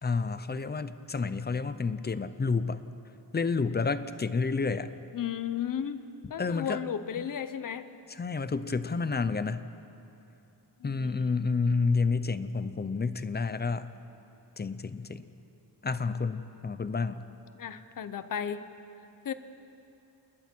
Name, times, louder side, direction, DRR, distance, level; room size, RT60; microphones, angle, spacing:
voice 1, 0.0-2.8 3.3-4.9 6.4-6.8 7.2-7.3 8.1-9.7 10.8-13.9 14.6-15.2 15.8-17.2, left 4 dB, 25° left, 13 dB, 0.6 m, -30 dB
voice 2, 5.1-6.0 6.3-7.9 10.8-11.3 17.5-18.7 19.2-19.3, left 8 dB, 50° left, 11 dB, 0.9 m, -34 dB
28.5 x 20.5 x 4.6 m, 2.8 s
wide cardioid pair, 140°, 43 cm